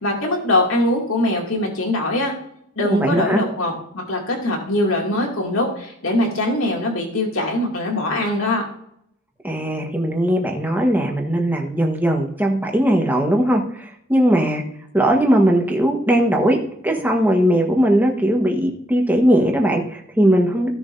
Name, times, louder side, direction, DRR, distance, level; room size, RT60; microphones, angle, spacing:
voice 1, 0.0-2.3 2.8-8.6, left 1 dB, 70° left, 0 dB, 2.6 m, -22 dB
voice 2, 2.8-3.4 9.4-14.6 14.9-16.6 16.8-20.7, right 1 dB, 10° right, 1 dB, 1.3 m, -19 dB
16.0 x 7.0 x 2.7 m, 0.71 s
head